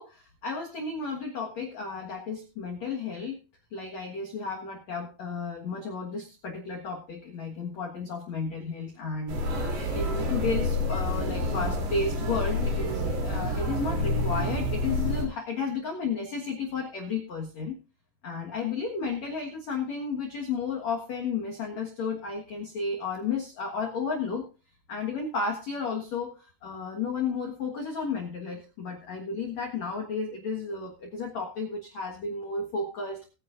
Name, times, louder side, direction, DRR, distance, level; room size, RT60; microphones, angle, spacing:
voice 1, 0.0-3.4 3.7-9.4 9.9-17.8 18.2-24.5 24.9-33.3, left 4 dB, 85° left, 1 dB, 1.5 m, -33 dB
sound 1, 9.3-15.2, left 1 dB, 55° right, 5.0 m, -28 dB
20.5 x 9.8 x 2.6 m, 0.33 s
omnidirectional pair, 5.9 m